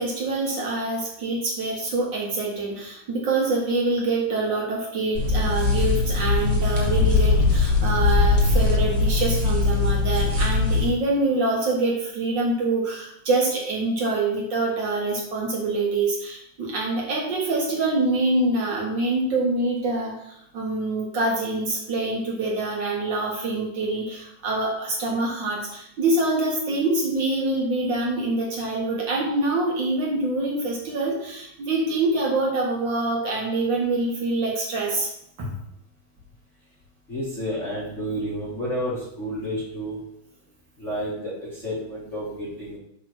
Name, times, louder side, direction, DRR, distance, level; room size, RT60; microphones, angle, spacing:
voice 1, 0.0-35.1 35.4-35.5, right 2 dB, 75° right, -3 dB, 1.0 m, -25 dB
sound 1, 5.1-10.9, left 3 dB, 20° right, 1.0 m, -22 dB
Bird, 6.8-9.3, left 5 dB, 85° left, 1.9 m, -22 dB
voice 2, 37.1-40.0 40.8-42.8, equal, 60° left, -7 dB, 0.7 m, -30 dB
8.5 x 3.1 x 6.1 m, 0.74 s
omnidirectional pair, 4.1 m